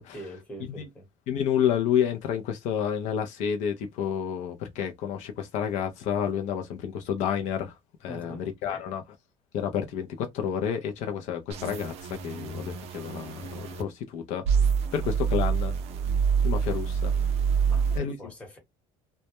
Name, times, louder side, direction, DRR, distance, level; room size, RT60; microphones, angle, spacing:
voice 1, 0.1-1.1 8.1-8.9 17.7-18.6, equal, 10° left, 1.0 m, -43 dB
voice 2, 1.3-7.7 8.0-9.0 9.5-15.7 16.4-17.1 18.0-18.2, left 8 dB, 65° left, 0.5 m, -30 dB
sound 1, 11.5-13.8 14.4-18.0, right 6 dB, 55° right, 0.4 m, -26 dB
2.1 x 2.1 x 2.8 m
cardioid pair, 160°, 13 cm